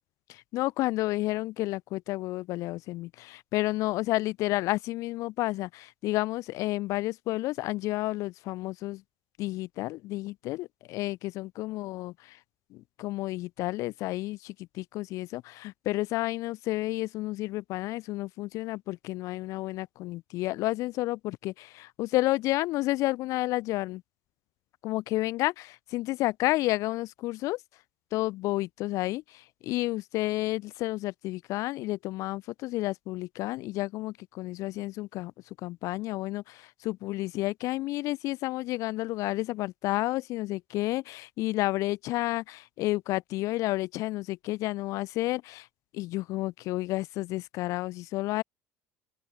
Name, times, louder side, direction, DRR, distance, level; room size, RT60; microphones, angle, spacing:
voice 1, 0.3-9.0 9.4-12.4 12.7-24.0 24.8-27.6 28.1-35.3 35.6-45.7 45.9-48.4, left 18 dB, 65° left, 0.3 m, -31 dB
open air
supercardioid pair, 105°, 6 cm